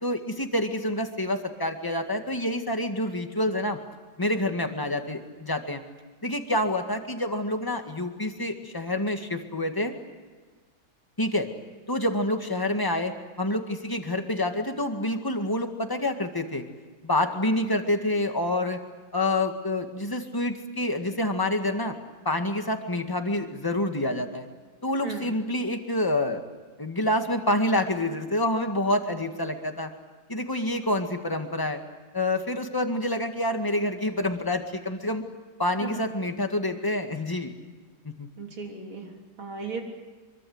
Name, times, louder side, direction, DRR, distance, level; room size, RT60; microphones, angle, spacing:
voice 1, 0.0-3.8 4.2-5.8 6.2-9.9 11.2-11.5 11.9-16.6 17.0-18.8 19.1-22.0 22.3-24.5 24.8-26.4 26.8-29.9 30.3-31.8 32.1-35.2 35.6-37.5 38.0-38.3, left 1 dB, 10° left, 5 dB, 1.8 m, -27 dB
voice 2, 38.4-39.8, right 4 dB, 85° right, 1 dB, 4.5 m, -36 dB
25.5 x 23.5 x 8.0 m, 1.4 s
omnidirectional pair, 2.2 m